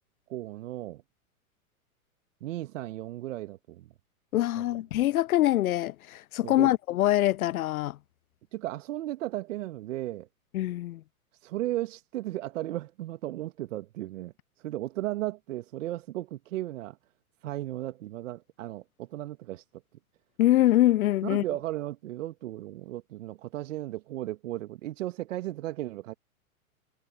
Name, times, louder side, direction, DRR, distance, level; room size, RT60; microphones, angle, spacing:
voice 1, 0.3-1.0 2.4-3.9 4.6-4.7 6.4-6.7 8.5-10.3 11.4-17.0 17.4-19.6 21.2-26.1, right 15 dB, 60° right, 1.6 m, -35 dB
voice 2, 4.3-8.0 10.5-11.0 20.4-21.4, left 14 dB, 75° left, 0.5 m, -24 dB
hypercardioid pair, 110°, 43 cm